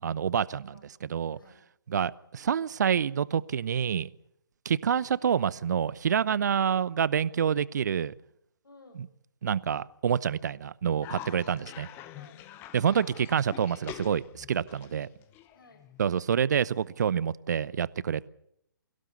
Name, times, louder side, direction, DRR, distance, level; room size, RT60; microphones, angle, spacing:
voice 1, 0.0-0.7 1.0-1.4 1.9-4.1 4.6-8.1 9.4-11.9 12.7-15.1 16.0-18.3, right 8 dB, 55° right, 21 dB, 0.8 m, -27 dB
voice 2, 6.5-6.9 8.6-9.1 11.2-11.8 12.1-12.5 15.5-15.9, left 2 dB, 70° left, 7 dB, 7.0 m, -56 dB
Cough, 11.0-16.1, left 12 dB, 20° left, 1.0 m, -46 dB
23.5 x 16.5 x 8.4 m, 0.75 s
figure-of-eight pair, 140°, 12 cm